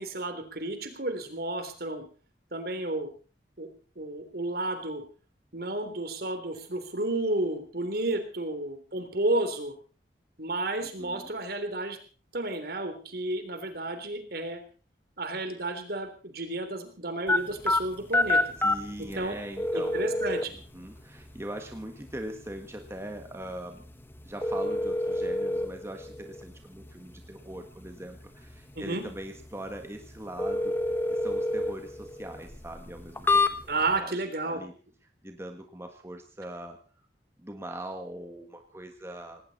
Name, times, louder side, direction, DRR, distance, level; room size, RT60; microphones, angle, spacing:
voice 1, 0.0-2.1 2.5-3.1 3.6-3.7 4.0-5.0 5.5-9.7 10.4-12.0 12.3-14.6 15.2-18.4 19.0-19.4 19.7-20.5 28.8-29.0 33.7-34.6, right 2 dB, 60° right, 8 dB, 3.4 m, -32 dB
voice 2, 10.8-11.3 18.6-20.1 20.5-23.8 24.2-33.4 34.0-34.7 35.2-36.8 37.4-39.4, right 1 dB, 15° right, 5 dB, 1.6 m, -41 dB
sound 1, 17.3-34.0, left 2 dB, 10° left, 1.3 m, -31 dB
18.5 x 17.5 x 4.2 m, 0.38 s
head